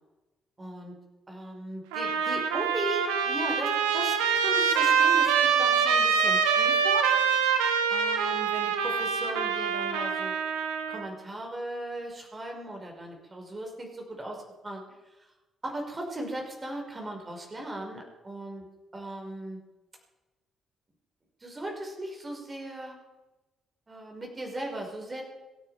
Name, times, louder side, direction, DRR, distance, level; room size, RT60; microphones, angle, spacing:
voice 1, 0.6-0.9 1.3-7.5 7.9-10.3 10.9-14.8 15.2-15.3 15.6-18.6 18.9-19.6 21.4-23.0 23.9-25.2, right 1 dB, 25° right, 1 dB, 5.5 m, -37 dB
Trumpet, 1.9-11.1, right 6 dB, 70° right, 1.6 m, -25 dB
26.5 x 10.0 x 5.1 m, 1.1 s
figure-of-eight pair, 40°, 0 cm